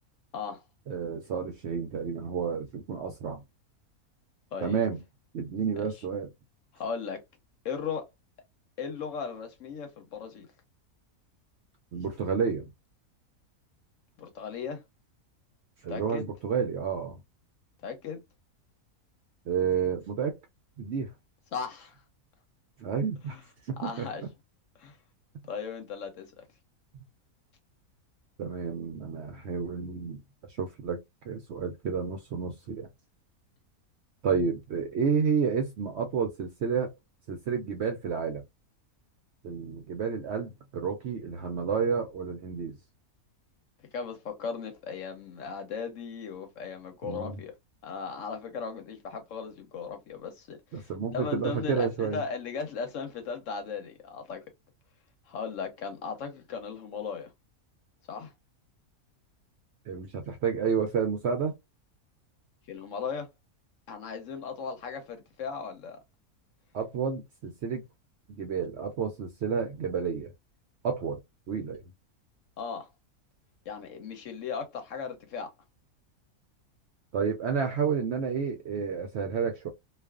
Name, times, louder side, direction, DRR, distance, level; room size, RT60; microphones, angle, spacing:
voice 1, 0.9-3.4 4.6-5.0 5.3-6.3 11.9-12.7 15.8-17.2 19.5-20.3 20.8-21.1 22.8-23.4 23.6-24.1 26.9-27.0 28.4-30.2 30.6-31.0 31.2-32.9 34.2-36.9 37.3-38.4 39.4-42.8 47.0-47.4 50.7-52.2 59.9-61.6 66.7-67.8 68.3-70.3 70.8-71.2 71.5-71.8 77.1-79.7, right 6 dB, 65° right, 0.7 m, -30 dB
voice 2, 6.7-7.2 7.6-8.1 8.8-10.5 14.2-14.8 15.9-16.2 17.8-18.2 21.5-22.0 23.3-23.4 23.8-24.2 24.8-25.0 25.5-26.4 43.8-47.5 47.8-54.4 55.3-57.3 58.1-58.3 62.7-63.3 63.9-66.0 72.6-72.9 73.7-75.5, left 6 dB, 65° left, 1.0 m, -37 dB
2.4 x 2.4 x 2.2 m
omnidirectional pair, 1.6 m